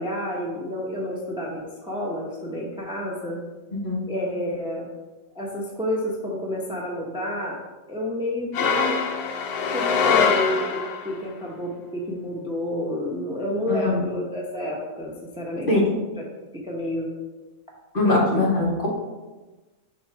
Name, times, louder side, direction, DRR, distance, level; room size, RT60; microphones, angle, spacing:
voice 1, 0.0-3.4 4.1-4.9 5.3-7.6 7.9-8.9 9.7-15.7 16.7-17.1 18.0-18.4, left 1 dB, 5° right, -3 dB, 0.6 m, -29 dB
voice 2, 3.7-4.0 13.7-14.0 15.7-15.9 17.9-18.9, left 2 dB, 35° left, -4 dB, 1.3 m, -22 dB
sound 1, 8.5-11.2, left 5 dB, 75° left, 1.1 m, -23 dB
5.4 x 3.9 x 4.6 m, 1.2 s
omnidirectional pair, 1.6 m